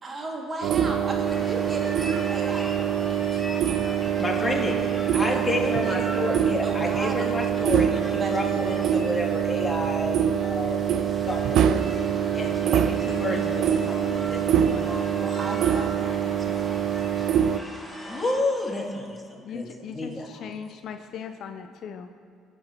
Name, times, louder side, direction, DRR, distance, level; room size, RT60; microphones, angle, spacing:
voice 1, 0.0-3.2 5.2-7.4 8.1-8.7 15.2-17.2, right 2 dB, 35° right, 0 dB, 2.1 m, -36 dB
sound 1, 0.6-17.6, right 9 dB, 65° right, 0.3 m, -25 dB
sound 2, 1.2-18.4, equal, ahead, 2.5 m, -41 dB
voice 2, 4.2-10.8 11.2-11.8 12.3-15.1 18.0-19.7 19.9-20.3, left 2 dB, 20° left, -1 dB, 2.6 m, -30 dB
voice 3, 19.4-22.1, left 7 dB, 60° left, 8 dB, 0.5 m, -38 dB
19.0 x 8.1 x 3.0 m, 2.2 s
hypercardioid pair, 60°, 0 cm